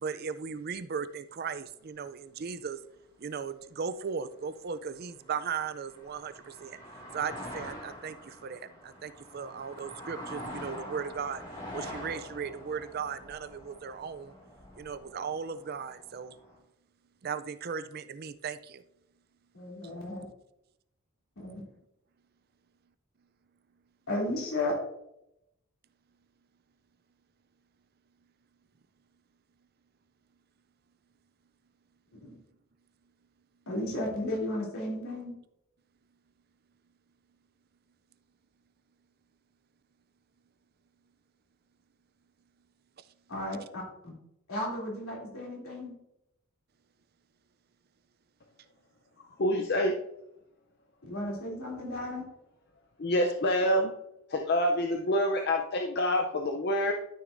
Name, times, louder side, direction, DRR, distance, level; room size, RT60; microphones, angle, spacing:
voice 1, 0.0-2.8 3.2-6.8 7.1-11.4 11.7-14.3 14.8-16.4 17.2-18.8, right 6 dB, 45° right, 13 dB, 0.4 m, -37 dB
sound 1, 4.9-16.6, equal, 20° left, 2.0 m, -45 dB
voice 2, 19.5-20.2 21.4-21.6 24.1-24.8 32.2-32.4 33.7-35.3 43.3-44.2 44.5-45.9 51.1-52.3, left 1 dB, 75° left, -3 dB, 3.0 m, -34 dB
voice 3, 49.4-50.0 53.0-53.9 54.3-56.9, left 1 dB, 50° left, 3 dB, 0.6 m, -27 dB
12.5 x 6.2 x 2.6 m, 0.81 s
head